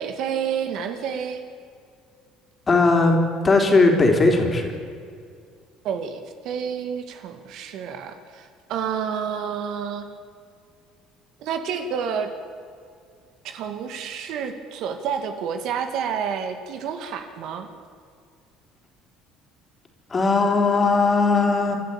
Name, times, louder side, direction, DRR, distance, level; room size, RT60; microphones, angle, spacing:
voice 1, 0.0-1.4 5.8-6.2 6.4-10.1 11.4-12.3 13.4-17.7, right 7 dB, 65° right, 7 dB, 2.1 m, -29 dB
voice 2, 2.7-3.2 3.4-4.7 20.1-21.8, left 3 dB, 25° left, 3 dB, 3.8 m, -18 dB
29.5 x 12.0 x 8.8 m, 2.2 s
cardioid pair, 110°, 0 cm